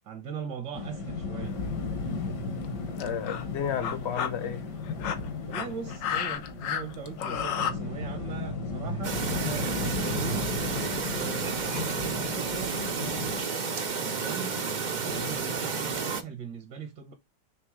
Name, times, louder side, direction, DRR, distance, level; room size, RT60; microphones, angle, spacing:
voice 1, 0.0-1.5 5.5-10.5 11.1-13.5 14.1-14.6 14.9-17.1, right 7 dB, 75° right, 1.7 m, -40 dB
sound 1, 0.7-13.4, left 3 dB, 70° left, 1.8 m, -35 dB
sound 2, 1.5-1.7 2.6-2.7 3.0-3.5 3.8-4.3 4.9-7.7, left 8 dB, 90° left, 1.6 m, -31 dB
voice 2, 2.9-4.7 15.1-15.3, left 8 dB, 50° left, 0.9 m, -33 dB
Chirp tweet, 9.0-16.2, right 5 dB, 55° right, 0.5 m, -31 dB
6.2 x 3.3 x 4.7 m
omnidirectional pair, 1.9 m